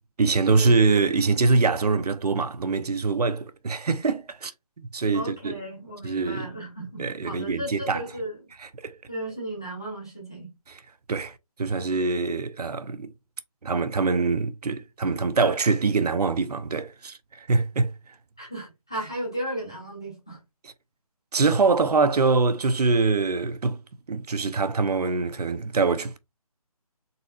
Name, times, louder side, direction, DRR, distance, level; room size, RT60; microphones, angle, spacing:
voice 1, 0.2-4.5 4.8-5.6 6.0-6.5 7.0-8.0 8.8-9.0 11.1-13.1 13.6-17.9 21.3-23.8 24.1-26.2, right 4 dB, 90° right, 0.7 m, -24 dB
voice 2, 5.1-8.4 9.1-10.5 18.4-20.4, right 1 dB, 10° left, 0.5 m, -35 dB
4.0 x 3.9 x 2.4 m
hypercardioid pair, 175°, 19 cm